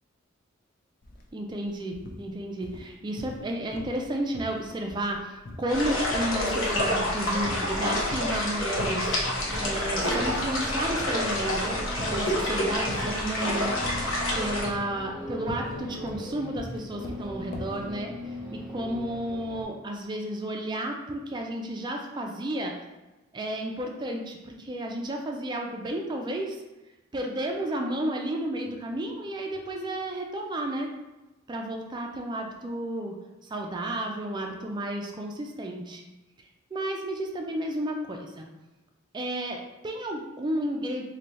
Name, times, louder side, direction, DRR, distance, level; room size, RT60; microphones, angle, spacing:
sound 1, 1.0-1.2 1.5-2.2 2.6-3.5 3.7-4.1 4.3-7.1 7.4-8.4 8.8-9.2 9.5-9.7 10.1-10.7 11.0-12.3 12.9-13.3 13.8-14.3 14.6-17.8, left 1 dB, 45° left, 0.5 m, -40 dB
voice 1, 1.3-11.8 12.1-13.7 14.3-22.7 23.3-26.6 27.1-30.9 31.5-33.1 33.4-36.0 36.7-38.5 39.1-41.0, right 1 dB, 20° right, 2 dB, 0.3 m, -32 dB
sound 2, 5.7-14.7, left 1 dB, 70° left, 0.8 m, -28 dB
sound 3, 8.7-19.6, left 1 dB, ahead, 0.7 m, -41 dB
3.1 x 2.2 x 4.0 m, 1.1 s
head